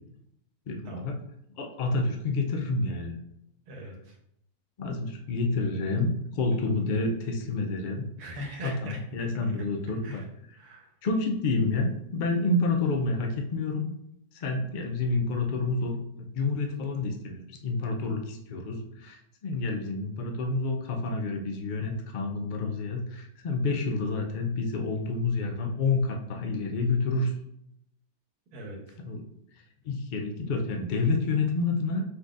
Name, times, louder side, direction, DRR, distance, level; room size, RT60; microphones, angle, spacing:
voice 1, 0.7-1.1 1.6-3.2 4.8-8.0 8.6-10.2 11.0-13.9 14.3-16.0 16.3-27.3 29.1-29.2 29.8-32.0, left 3 dB, 90° left, 3 dB, 0.4 m, -29 dB
voice 2, 3.7-4.2 8.2-9.3 9.5-9.6 10.0-10.3 10.5-10.9 28.5-29.0, right 1 dB, 80° right, 1 dB, 1.5 m, -41 dB
4.7 x 4.0 x 2.5 m, 0.76 s
omnidirectional pair, 1.6 m